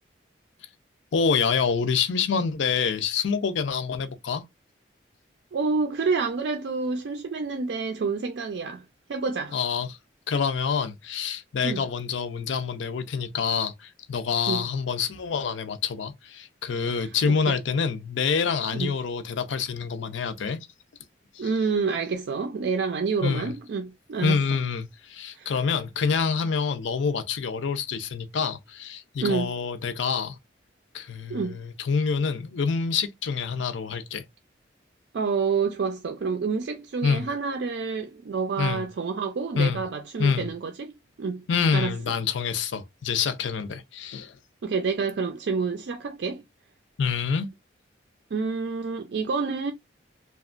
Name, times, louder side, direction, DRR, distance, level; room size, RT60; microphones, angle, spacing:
voice 1, 1.1-4.4 9.5-10.0 10.3-20.6 21.3-21.5 23.2-23.5 24.2-30.4 30.9-34.2 37.0-37.3 38.6-38.8 39.6-39.8 40.2-40.5 41.5-44.4 47.0-47.5, left 6 dB, 75° left, 0.4 m, -27 dB
voice 2, 5.5-8.8 9.1-9.6 11.6-11.8 14.5-14.6 17.0-17.6 18.7-18.9 21.4-24.4 25.3-25.5 29.2-29.5 31.3-31.6 35.1-41.4 41.7-41.9 44.6-46.4 48.3-49.7, right 5 dB, 65° right, 0.4 m, -28 dB
2.8 x 2.3 x 2.4 m
head